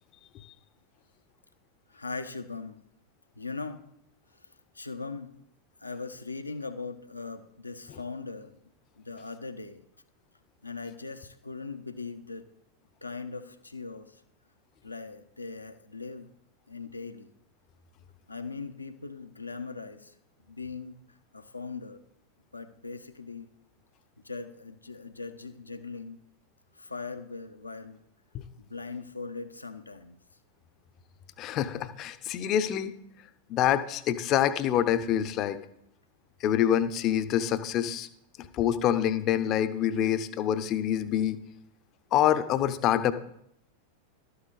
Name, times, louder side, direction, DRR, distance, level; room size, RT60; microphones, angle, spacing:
voice 1, 1.9-2.8 3.4-3.8 4.7-5.3 5.8-8.6 9.0-9.8 10.6-12.5 13.0-14.1 14.8-16.3 16.7-17.3 18.3-20.1 20.5-21.0 21.3-22.0 22.5-23.5 24.2-26.2 26.8-28.0 28.6-30.2, left 4 dB, 80° left, 7 dB, 1.0 m, -40 dB
voice 2, 31.4-32.9 33.5-35.6 36.4-38.1 38.6-41.4 42.1-43.1, left 10 dB, 35° left, 12 dB, 0.8 m, -26 dB
12.5 x 9.7 x 4.1 m, 0.76 s
figure-of-eight pair, 90°, 0 cm